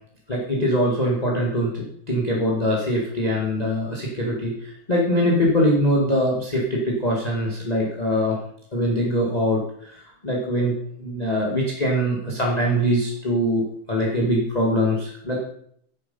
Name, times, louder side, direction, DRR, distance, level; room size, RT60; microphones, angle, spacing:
voice 1, 0.3-8.4 8.7-15.4, equal, 20° left, -2 dB, 1.1 m, -23 dB
9.9 x 8.7 x 5.5 m, 0.67 s
omnidirectional pair, 4.0 m